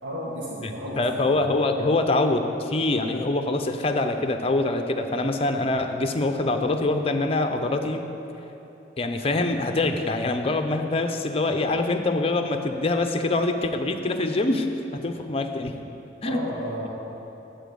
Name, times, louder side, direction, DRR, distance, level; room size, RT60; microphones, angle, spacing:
voice 1, 0.0-1.4 16.2-16.9, equal, 85° right, -6 dB, 1.5 m, -33 dB
voice 2, 0.6-8.0 9.0-14.7 15.0-15.8 16.2-16.4, left 2 dB, 30° left, 6 dB, 0.6 m, -24 dB
12.5 x 4.4 x 7.8 m, 3.0 s
head